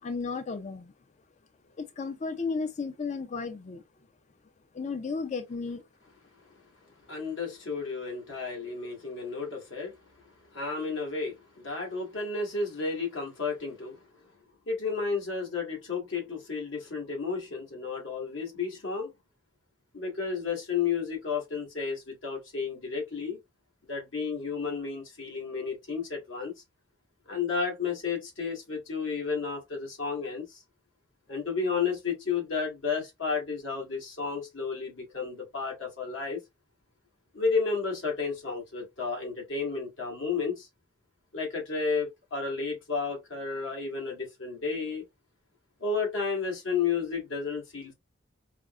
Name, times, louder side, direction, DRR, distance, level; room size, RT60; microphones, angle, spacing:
voice 1, 0.0-0.9 1.7-3.8 4.7-5.8, left 4 dB, 40° left, 0.4 m, -34 dB
voice 2, 7.1-10.0 10.5-14.0 14.7-19.1 19.9-23.4 23.9-26.5 27.3-30.6 31.3-36.4 37.3-40.7 41.3-45.0 45.8-47.9, left 5 dB, 75° left, 1.7 m, -32 dB
4.9 x 2.0 x 2.3 m
head